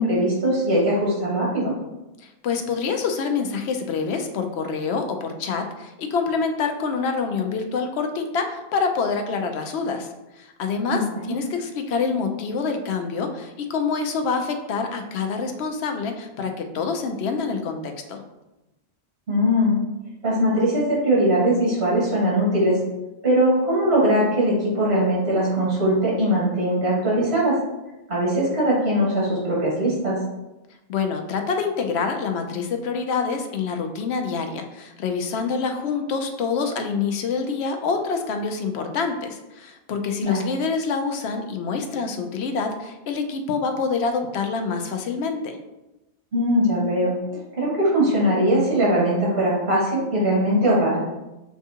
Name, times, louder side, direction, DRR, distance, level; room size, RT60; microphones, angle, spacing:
voice 1, 0.0-1.7 10.9-11.3 19.3-19.8 20.2-22.8 23.2-27.6 28.1-30.2 40.2-40.4 46.3-47.1 47.6-51.0, equal, 75° right, -6 dB, 1.8 m, -21 dB
voice 2, 2.2-10.1 10.4-18.2 30.9-45.6, left 5 dB, 80° left, 5 dB, 0.8 m, -26 dB
6.9 x 2.3 x 2.8 m, 0.99 s
omnidirectional pair, 1.1 m